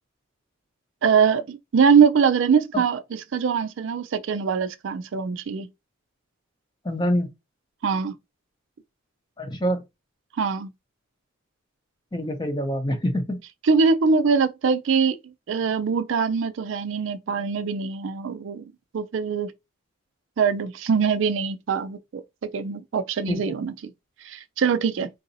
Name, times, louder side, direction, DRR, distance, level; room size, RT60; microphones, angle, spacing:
voice 1, 1.0-5.7 7.8-8.1 10.4-10.7 13.7-15.2 15.5-19.5 20.4-23.7 24.2-25.1, right 6 dB, 70° right, 0.4 m, -23 dB
voice 2, 6.8-7.3 9.4-9.8 12.1-13.4 23.3-23.6, equal, 20° left, 0.7 m, -26 dB
3.9 x 2.6 x 2.6 m
head